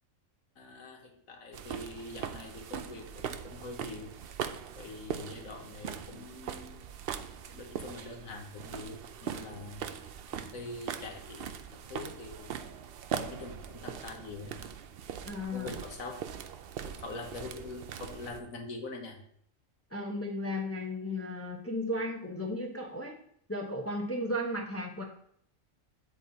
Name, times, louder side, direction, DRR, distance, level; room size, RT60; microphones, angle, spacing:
voice 1, 0.5-4.1 4.7-6.8 7.4-9.8 10.3-12.5 13.2-14.5 15.5-16.3 16.8-19.2, left 3 dB, 85° left, 3 dB, 1.7 m, -44 dB
Walking Up Down Stairs Close, 1.5-18.4, right 8 dB, 60° right, 0.6 m, -41 dB
voice 2, 15.2-15.8 19.9-23.2 23.5-25.0, left 1 dB, 10° left, 0 dB, 0.9 m, -35 dB
8.3 x 8.2 x 2.8 m, 0.66 s
omnidirectional pair, 1.4 m